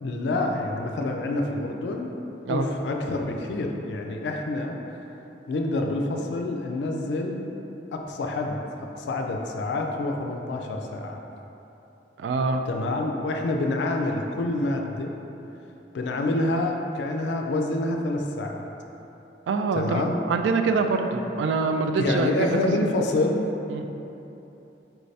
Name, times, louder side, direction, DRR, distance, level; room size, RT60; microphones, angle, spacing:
voice 1, 0.0-2.1 2.5-5.0 5.5-7.4 7.9-8.6 8.9-11.2 12.7-15.1 15.9-18.7 19.7-20.2 22.0-23.5, left 2 dB, 75° left, 2 dB, 0.3 m, -27 dB
voice 2, 12.2-12.6 19.5-22.5 23.7-23.8, right 3 dB, 90° right, 5 dB, 0.3 m, -25 dB
4.5 x 3.2 x 2.7 m, 3.0 s
head